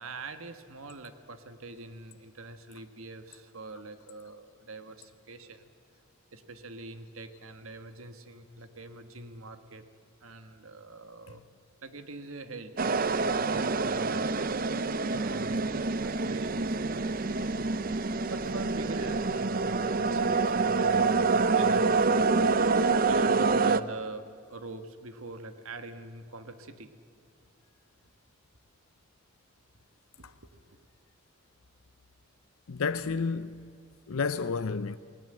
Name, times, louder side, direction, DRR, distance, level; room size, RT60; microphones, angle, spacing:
voice 1, 0.0-5.7 6.3-9.8 10.2-11.4 11.8-16.8 18.3-22.6 23.0-26.9 30.2-30.7, right 2 dB, 75° right, 1.5 m, -44 dB
sound 1, 12.8-23.8, right 4 dB, 40° right, 0.6 m, -26 dB
voice 2, 32.7-33.7 34.1-35.0, left 5 dB, 75° left, 0.6 m, -31 dB
28.0 x 18.0 x 7.7 m
head